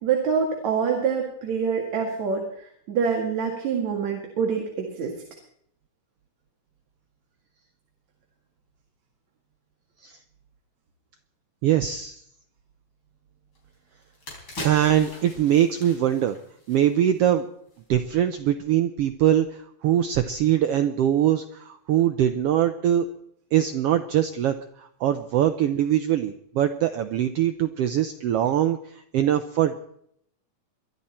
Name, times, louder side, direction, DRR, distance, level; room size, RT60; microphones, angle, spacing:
voice 1, 0.0-5.1, right 6 dB, 65° right, 1 dB, 3.2 m, -26 dB
voice 2, 11.6-12.2 14.6-16.4 16.7-17.5 17.9-23.1 23.5-29.8, right 11 dB, 85° right, 9 dB, 1.3 m, -22 dB
sound 1, 13.6-13.7 14.0-17.3 17.6-17.8, left 1 dB, 40° left, 4.8 m, -40 dB
23.0 x 12.5 x 4.3 m, 0.68 s
omnidirectional pair, 3.6 m